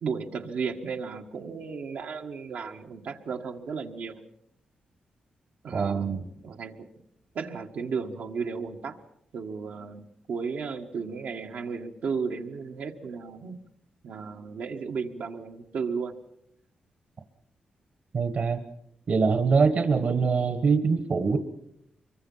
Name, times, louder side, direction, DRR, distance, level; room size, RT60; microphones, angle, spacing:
voice 1, 0.0-4.2 5.6-6.9 7.3-9.0 9.3-13.6 14.0-16.1, right 5 dB, 80° right, 3 dB, 1.7 m, -34 dB
voice 2, 5.7-6.2 18.1-18.6 19.1-21.4, right 5 dB, 55° right, 9 dB, 1.5 m, -23 dB
24.5 x 23.0 x 5.6 m, 0.78 s
wide cardioid pair, 130°, 3 cm